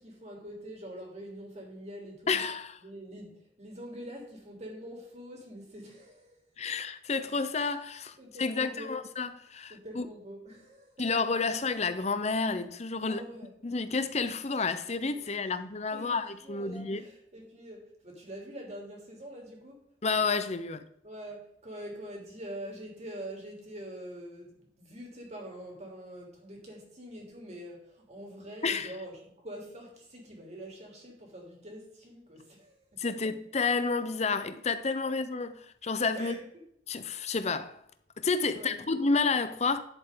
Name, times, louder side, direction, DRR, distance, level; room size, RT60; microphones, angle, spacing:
voice 1, 0.0-2.4 2.8-6.4 8.2-9.0 9.7-11.1 13.0-13.5 15.1-15.6 15.9-19.8 21.0-33.2 35.0-35.1 36.1-36.6 38.5-38.9, equal, 40° right, 3.4 m, -45 dB
voice 2, 2.3-2.7 6.6-10.1 11.0-13.2 13.6-17.0 20.0-20.9 28.6-28.9 33.0-36.3 36.9-37.8 38.2-39.8, left 4 dB, 40° left, 0.8 m, -30 dB
11.0 x 7.6 x 3.9 m
head